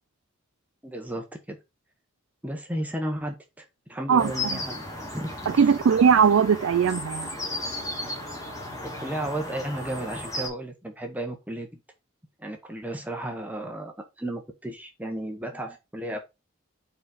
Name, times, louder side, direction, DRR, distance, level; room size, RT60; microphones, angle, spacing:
voice 1, 0.8-1.6 2.4-4.8 5.1-5.3 5.5-5.7 9.0-11.8 12.4-16.2, right 1 dB, 10° right, 0.9 m, -34 dB
voice 2, 4.1-4.6 5.5-7.3, right 6 dB, 75° right, 0.4 m, -20 dB
sound 1, 4.2-10.5, left 2 dB, 15° left, 1.6 m, -35 dB
5.0 x 4.0 x 5.2 m
head